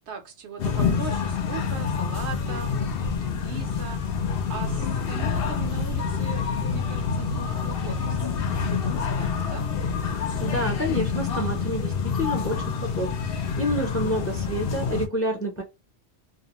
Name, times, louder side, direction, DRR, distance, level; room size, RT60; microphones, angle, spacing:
voice 1, 0.0-9.6, right 6 dB, 75° right, 1.0 m, -40 dB
sound 1, 0.6-15.1, left 6 dB, 65° left, 0.7 m, -27 dB
voice 2, 10.4-15.6, equal, 15° left, 0.5 m, -29 dB
2.4 x 2.1 x 2.9 m
omnidirectional pair, 1.2 m